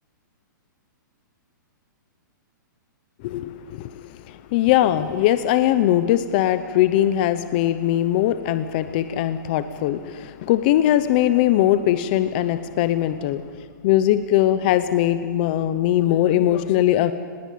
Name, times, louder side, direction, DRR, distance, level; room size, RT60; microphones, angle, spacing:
voice 1, 3.2-13.4 13.8-17.1, left 12 dB, 30° left, 12 dB, 0.7 m, -20 dB
25.0 x 20.0 x 8.6 m, 2.1 s
hypercardioid pair, 170°, 11 cm